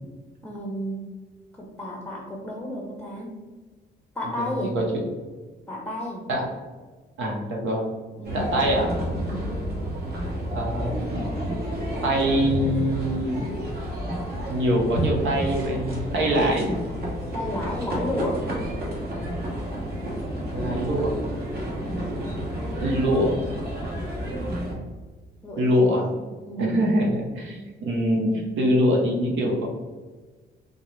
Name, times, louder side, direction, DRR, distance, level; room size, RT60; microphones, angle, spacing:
voice 1, 0.4-1.1 1.6-3.3 4.1-4.8 5.7-6.2 8.2-8.5 9.1-9.6 17.3-18.4 21.8-22.0 25.4-26.1 26.4-26.8, left 1 dB, 5° left, -2 dB, 0.6 m, -32 dB
voice 2, 4.3-4.8 6.3-6.5 7.2-7.8 8.3-8.9 10.5-11.2 12.0-13.4 14.5-16.7 20.5-21.1 22.8-23.3 25.6-26.0 26.6-29.7, equal, 75° right, -1 dB, 0.7 m, -24 dB
sound 1, 8.2-24.7, right 1 dB, 55° right, 1.1 m, -30 dB
3.7 x 2.0 x 3.1 m, 1.3 s
cardioid pair, 90°, 20 cm